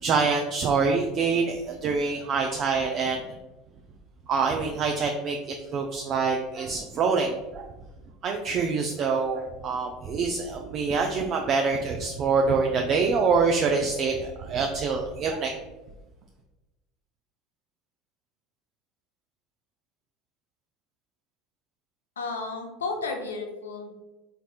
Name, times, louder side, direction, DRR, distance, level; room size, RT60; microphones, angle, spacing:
voice 1, 0.0-3.2 4.3-5.4 5.6-7.7 8.2-15.5, right 4 dB, 45° right, 2 dB, 0.4 m, -25 dB
voice 2, 22.2-23.9, left 3 dB, 85° left, 3 dB, 0.5 m, -33 dB
4.1 x 3.3 x 2.3 m, 1.1 s
hypercardioid pair, 75°, 0 cm